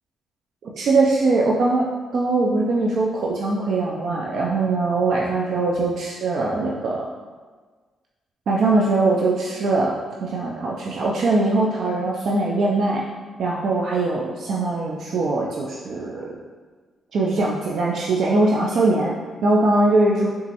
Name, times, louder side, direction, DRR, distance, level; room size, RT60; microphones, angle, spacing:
voice 1, 0.7-1.9 2.1-7.1 8.5-13.0 13.4-16.4 17.1-19.1 19.4-20.3, right 2 dB, 65° right, -3 dB, 0.3 m, -21 dB
3.4 x 2.9 x 2.8 m, 1.4 s
cardioid pair, 130°, 0 cm